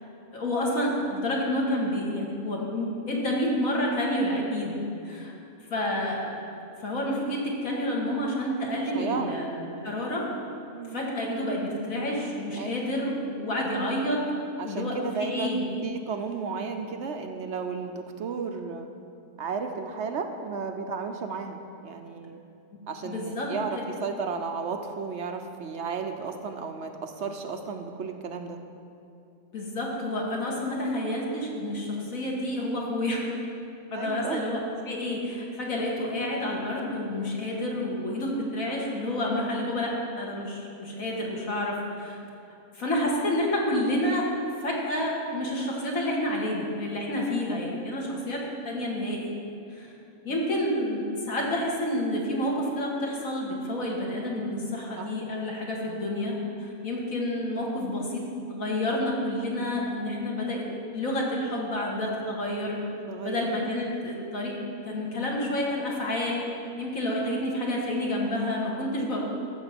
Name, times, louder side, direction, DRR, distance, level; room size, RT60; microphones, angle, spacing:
voice 1, 0.3-4.8 5.1-5.3 5.7-6.3 6.8-10.3 10.9-14.2 14.6-15.6 23.0-23.5 29.5-33.2 33.9-42.2 42.7-44.3 44.6-49.3 49.7-49.9 50.2-60.7 60.9-62.8 63.2-66.5 66.8-69.2, left 1 dB, 70° left, -3 dB, 2.3 m, -29 dB
voice 2, 8.9-9.3 10.7-11.0 12.6-12.7 14.6-15.5 15.8-18.9 19.4-22.4 22.9-28.6 33.9-34.4 50.3-50.4 55.0-55.1 63.1-63.5, right 5 dB, 60° right, 5 dB, 0.9 m, -33 dB
13.5 x 6.9 x 5.9 m, 2.7 s
omnidirectional pair, 1.5 m